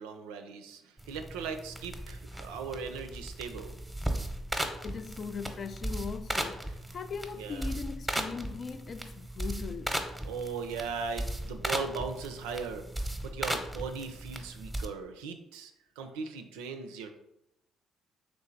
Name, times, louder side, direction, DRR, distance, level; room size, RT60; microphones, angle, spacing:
voice 1, 0.0-3.7 7.4-7.7 10.3-12.8 13.2-17.1, right 5 dB, 80° right, 0.4 m, -38 dB
sound 1, 1.0-14.9, right 1 dB, 5° right, 0.8 m, -37 dB
voice 2, 4.8-9.9, left 5 dB, 50° left, 0.3 m, -39 dB
3.3 x 3.2 x 3.9 m
hypercardioid pair, 50°, 0 cm